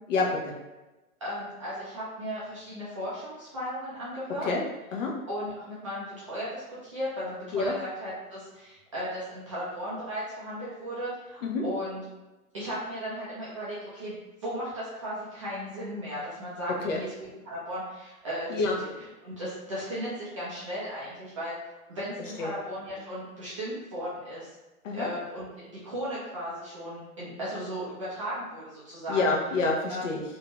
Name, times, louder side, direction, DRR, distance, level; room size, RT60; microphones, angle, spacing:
voice 1, 0.1-0.5 4.4-4.6 4.9-5.1 7.5-7.7 11.4-11.6 16.8-17.0 18.5-18.8 22.4-22.5 24.8-25.1 29.1-30.2, left 3 dB, 55° left, -1 dB, 0.7 m, -27 dB
voice 2, 1.2-4.5 5.0-12.0 12.5-14.1 14.4-16.7 17.0-17.1 17.4-18.6 19.2-21.5 21.9-24.5 24.9-29.2 29.9-30.1, equal, 25° right, -9 dB, 0.4 m, -36 dB
2.6 x 2.2 x 2.9 m, 1.1 s
hypercardioid pair, 145°, 45 cm